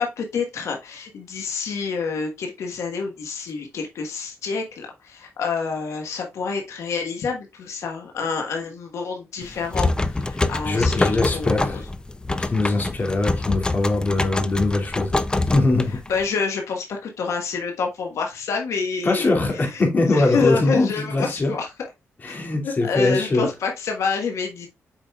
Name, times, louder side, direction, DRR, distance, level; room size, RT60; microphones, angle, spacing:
voice 1, 0.0-11.8 16.1-19.8 20.1-21.7 22.3-22.4 22.6-24.7, left 5 dB, 80° left, 1.4 m, -28 dB
sound 1, 9.4-16.3, left 2 dB, 15° left, 0.6 m, -25 dB
voice 2, 10.6-11.8 12.4-15.1 15.4-16.0 19.0-21.6 22.2-23.5, left 2 dB, 35° left, 2.4 m, -22 dB
7.9 x 5.1 x 2.3 m
cardioid pair, 110°, 5 cm